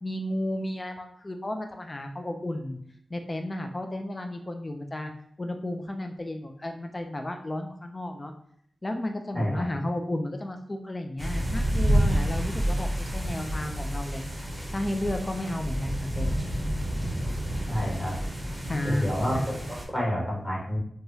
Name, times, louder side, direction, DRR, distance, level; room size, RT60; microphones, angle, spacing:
voice 1, 0.0-2.8 3.1-5.1 5.4-8.3 8.8-14.2 14.7-16.4 18.7-19.1, left 1 dB, 30° left, 5 dB, 0.3 m, -33 dB
sound 1, 11.2-19.9, right 1 dB, 10° right, 0.8 m, -29 dB
voice 2, 17.7-18.1 18.8-20.8, equal, 15° left, -4 dB, 1.3 m, -29 dB
3.0 x 2.3 x 2.7 m, 0.66 s
cardioid pair, 50°, 0 cm